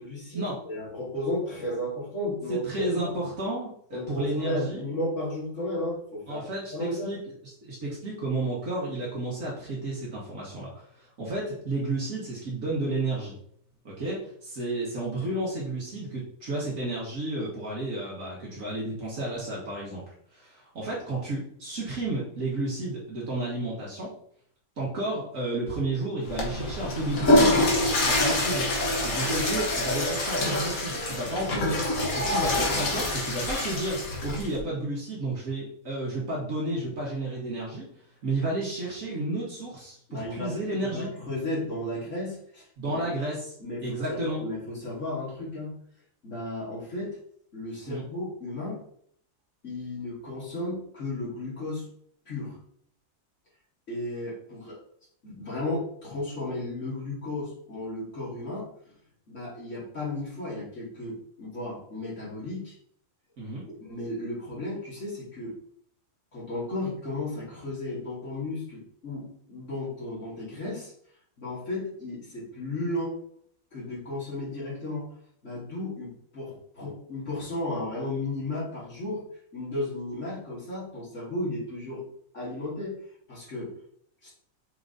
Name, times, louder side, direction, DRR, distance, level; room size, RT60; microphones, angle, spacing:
voice 1, 0.0-3.2 3.9-6.4 6.7-7.1 40.1-43.1 43.6-45.7 46.2-47.2 47.5-48.8 49.6-51.8 52.3-52.6 53.9-54.8 55.2-58.7 59.3-62.7 63.7-65.6 66.3-70.9 71.4-73.2 73.7-75.1 75.4-79.2 79.5-82.0 82.3-83.0 83.3-83.7 84.2-84.3, left 1 dB, 55° left, -7 dB, 3.0 m, -34 dB
voice 2, 2.5-4.9 6.3-13.4 13.8-20.0 20.3-24.1 24.8-27.6 28.0-28.7 29.0-31.8 32.2-37.9 38.2-41.1 42.8-43.4 43.8-44.4 47.9-48.0 63.4-63.6, right 2 dB, 65° right, -5 dB, 2.0 m, -32 dB
Water / Toilet flush, 26.2-34.6, left 1 dB, 80° left, 1.7 m, -26 dB
6.1 x 3.9 x 3.9 m, 0.65 s
omnidirectional pair, 1.5 m